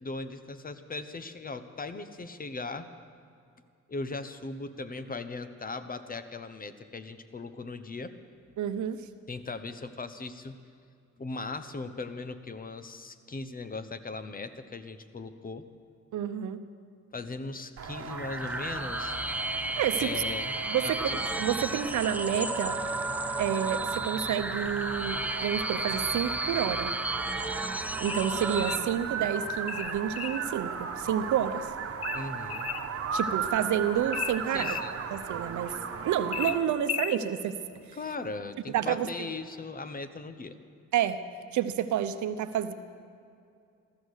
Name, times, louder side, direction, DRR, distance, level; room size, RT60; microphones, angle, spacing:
voice 1, 0.0-2.9 3.9-8.2 9.3-10.6 11.2-15.7 17.1-19.2 20.0-20.6 21.0-21.2 32.1-32.7 34.5-35.0 37.9-40.6, left 3 dB, 30° left, 10 dB, 0.9 m, -38 dB
voice 2, 8.6-9.0 16.1-16.6 19.8-20.1 20.7-21.1 21.4-22.8 23.4-26.9 28.0-31.7 33.1-34.8 35.1-35.7 36.0-37.6 38.7-39.3 40.9-41.2 41.5-42.7, right 9 dB, 75° right, 10 dB, 0.9 m, -29 dB
sound 1, 17.8-36.6, right 6 dB, 50° right, 1.3 m, -37 dB
sound 2, 18.1-28.8, right 1 dB, 5° right, 0.6 m, -33 dB
sound 3, 28.0-28.9 29.7-30.5 32.0-32.9 34.1-34.9 36.3-37.2, left 10 dB, 50° left, 0.7 m, -35 dB
16.0 x 13.5 x 6.5 m, 2.4 s
cardioid pair, 90°, 30 cm